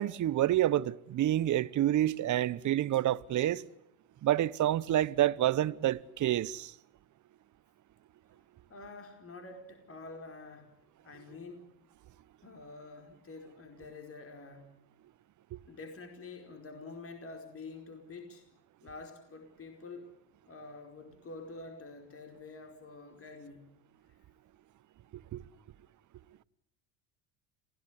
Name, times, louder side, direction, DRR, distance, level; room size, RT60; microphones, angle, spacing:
voice 1, 0.0-3.6 4.2-6.7 25.3-25.4, right 13 dB, 40° right, 1.1 m, -28 dB
voice 2, 8.7-10.7 11.0-11.7 12.4-14.7 15.7-18.4 18.8-20.1 20.5-23.6, left 3 dB, 30° left, 4.8 m, -47 dB
27.0 x 17.5 x 9.8 m
hypercardioid pair, 90°, 47 cm